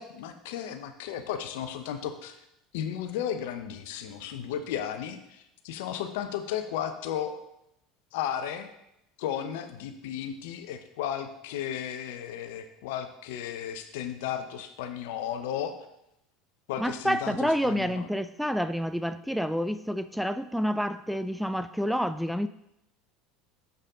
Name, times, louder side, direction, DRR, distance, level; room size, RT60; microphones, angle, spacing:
voice 1, 0.0-2.4 2.7-7.4 8.1-8.7 9.2-15.7 16.7-18.1, left 9 dB, 70° left, 8 dB, 0.7 m, -34 dB
voice 2, 16.8-22.5, equal, ahead, 12 dB, 0.4 m, -28 dB
7.0 x 6.5 x 3.7 m, 0.83 s
hypercardioid pair, 80°, 0 cm